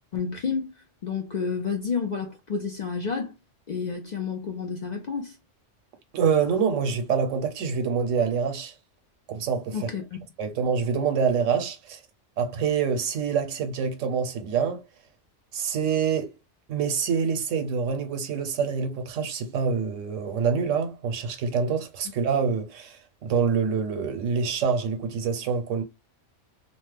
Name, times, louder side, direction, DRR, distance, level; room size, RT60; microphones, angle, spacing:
voice 1, 0.1-0.7 1.0-3.3 3.7-5.4 9.7-10.2, left 5 dB, 60° left, 0.4 m, -30 dB
voice 2, 6.1-8.7 9.3-9.9 10.4-12.0 12.4-14.8 15.5-16.3 16.7-25.8, right 6 dB, 85° right, 1.0 m, -26 dB
2.9 x 2.0 x 3.2 m
omnidirectional pair, 1.3 m